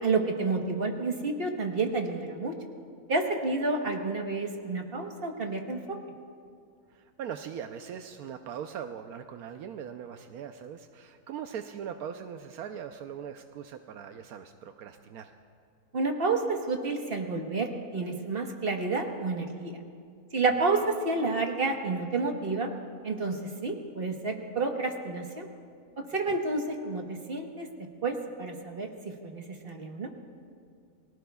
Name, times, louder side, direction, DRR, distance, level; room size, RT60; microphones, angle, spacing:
voice 1, 0.0-2.5 3.1-6.0 15.9-19.7 20.3-22.7 23.0-25.5 26.1-27.7 28.0-28.9 29.2-30.1, right 3 dB, 40° right, 3 dB, 1.4 m, -30 dB
voice 2, 6.9-15.3 26.3-26.4, right 8 dB, 85° right, 7 dB, 1.1 m, -40 dB
30.0 x 20.0 x 2.3 m, 2.3 s
omnidirectional pair, 1.6 m